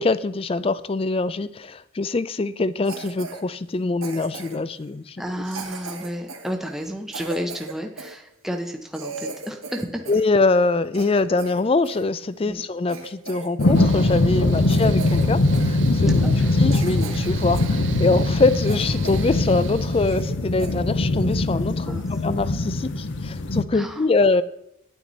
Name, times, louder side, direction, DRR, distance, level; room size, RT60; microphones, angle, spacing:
voice 1, 0.0-5.2 10.1-16.1 16.6-24.4, left 3 dB, 30° left, 0.3 m, -23 dB
Cough, 2.8-3.4 4.0-4.7 5.4-8.2 8.6-8.7 8.9-10.3 10.6-12.0 12.5-12.6 12.9-13.8 14.1-14.3 14.7-15.3 15.5-15.7 16.2-16.3 16.7-17.8 18.1-18.2 18.7-19.4 19.7-19.8 20.1-20.3 20.6-20.8 21.3-21.5, right 4 dB, 90° right, 1.5 m, -37 dB
voice 2, 5.2-10.0 12.4-12.6 16.0-16.3 21.9-22.0 23.7-24.1, equal, ahead, 0.7 m, -31 dB
sound 1, 13.6-23.6, left 2 dB, 60° left, 0.8 m, -22 dB
Mechanical fan, 13.7-20.2, right 5 dB, 65° right, 0.4 m, -34 dB
10.0 x 9.2 x 4.0 m
head